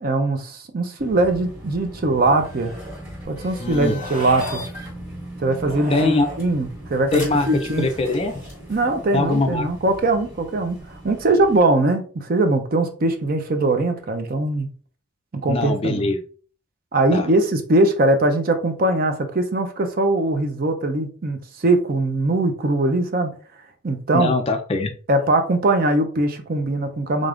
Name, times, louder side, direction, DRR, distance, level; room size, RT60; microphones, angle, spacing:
voice 1, 0.0-2.7 3.2-4.6 5.4-7.9 8.7-14.7 15.4-16.1 16.9-23.3 23.8-24.3 25.1-27.3, right 2 dB, 45° right, 0.5 m, -21 dB
sound 1, 1.0-11.6, equal, 10° right, 1.4 m, -38 dB
sound 2, 2.2-3.0 3.9-4.7 5.6-6.4 7.8-8.6, left 2 dB, 80° right, 1.9 m, -36 dB
voice 2, 3.6-3.9 5.9-6.3 7.1-7.5 7.8-8.3 9.1-9.7 15.5-16.1 17.1-17.3 24.1-24.9, left 3 dB, 30° left, 0.4 m, -21 dB
3.7 x 3.4 x 2.4 m
head